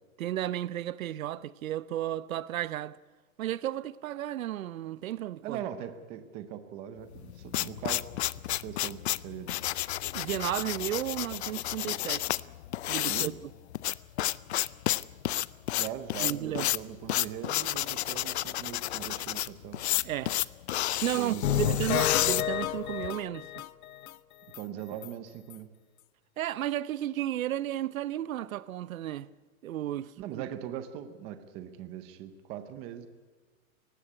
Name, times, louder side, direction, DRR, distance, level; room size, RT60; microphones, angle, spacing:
voice 1, 0.2-3.0 3.4-5.6 10.1-12.3 12.9-13.3 16.2-16.7 20.0-20.3 21.0-23.5 26.4-29.3 29.6-30.4, right 13 dB, 75° right, 0.8 m, -33 dB
voice 2, 5.4-8.0 8.5-9.6 13.0-13.3 15.7-19.8 21.1-21.8 24.6-25.7 30.2-33.1, right 10 dB, 15° right, 0.6 m, -40 dB
sound 1, 7.1-23.1, left 14 dB, 50° left, 0.5 m, -31 dB
sound 2, 21.4-24.1 24.5-24.6 25.0-25.1 25.5-25.6, left 11 dB, 80° left, 0.8 m, -30 dB
18.5 x 16.0 x 9.7 m
hypercardioid pair, 165°, 42 cm